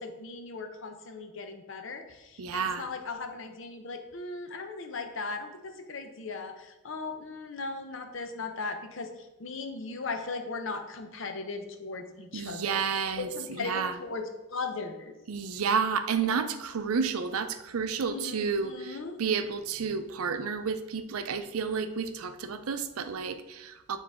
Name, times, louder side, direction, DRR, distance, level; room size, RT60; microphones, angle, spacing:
voice 1, 0.0-9.1 9.4-12.9 13.2-14.2 14.5-15.1 16.3-16.5 18.1-19.1, left 3 dB, 60° left, 6 dB, 0.7 m, -38 dB
voice 2, 2.4-2.9 12.3-14.0 15.3-24.0, right 6 dB, 90° right, 10 dB, 0.5 m, -31 dB
7.1 x 4.0 x 3.5 m, 1.0 s
head